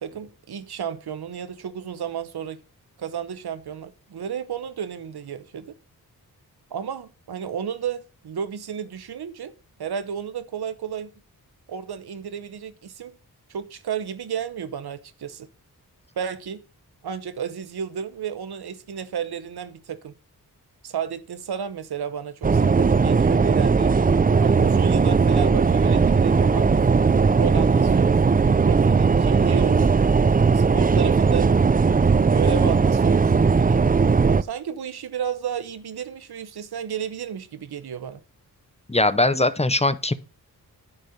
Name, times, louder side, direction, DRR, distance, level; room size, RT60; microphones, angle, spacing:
voice 1, 0.0-2.6 3.0-5.7 6.7-9.5 9.8-11.1 11.7-13.2 13.5-15.5 16.2-16.6 17.0-20.1 20.8-26.8 27.4-30.0 30.5-31.5 32.2-33.8 34.4-38.2, right 8 dB, 80° right, 0.9 m, -32 dB
sound 1, 22.4-34.4, right 5 dB, 25° right, 0.5 m, -18 dB
voice 2, 38.9-40.1, left 2 dB, 15° left, 0.7 m, -20 dB
9.9 x 4.2 x 6.4 m
cardioid pair, 45°, 38 cm